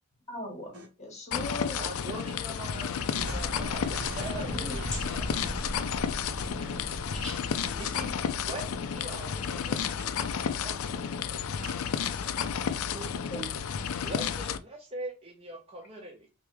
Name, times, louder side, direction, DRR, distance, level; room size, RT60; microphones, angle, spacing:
voice 1, 0.3-1.8 4.5-4.8 12.9-13.5, left 1 dB, 30° left, 1.0 m, -39 dB
sound 1, 1.3-14.6, left 7 dB, 70° left, 0.4 m, -32 dB
voice 2, 1.7-5.4 7.8-10.0 10.6-11.4 14.0-16.3, right 2 dB, 25° right, 0.7 m, -42 dB
sound 2, 2.9-9.9, left 2 dB, 5° left, 1.0 m, -49 dB
sound 3, 3.1-10.1, right 1 dB, 60° right, 1.0 m, -40 dB
voice 3, 6.6-8.0 10.0-10.8 11.6-12.1, equal, 75° right, 1.3 m, -51 dB
3.4 x 2.8 x 3.0 m
head